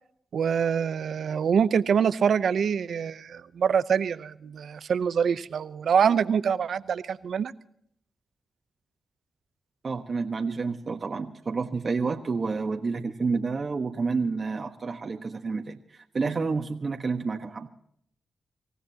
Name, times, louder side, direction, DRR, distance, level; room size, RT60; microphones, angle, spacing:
voice 1, 0.3-7.5, right 7 dB, 75° right, 14 dB, 0.7 m, -25 dB
voice 2, 9.8-17.7, right 4 dB, 50° right, 3 dB, 1.3 m, -29 dB
26.5 x 15.5 x 2.9 m, 0.67 s
cardioid pair, 55°, 0 cm